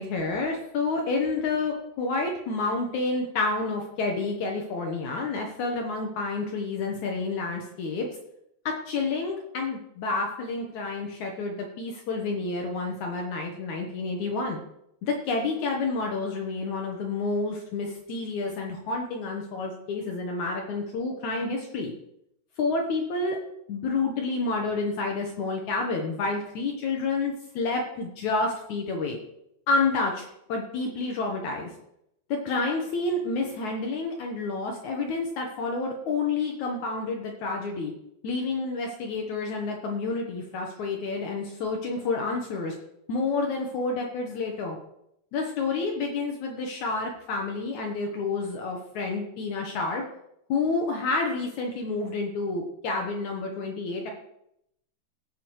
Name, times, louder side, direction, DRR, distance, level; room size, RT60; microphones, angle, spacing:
voice 1, 0.0-8.1 8.6-14.6 15.0-21.9 22.6-23.4 23.7-29.2 29.7-30.2 30.5-31.7 32.3-37.9 38.2-42.7 43.1-44.8 45.3-50.0 50.5-54.1, left 3 dB, 75° left, 1 dB, 1.7 m, -29 dB
16.5 x 7.1 x 4.6 m, 0.79 s
omnidirectional pair, 5.2 m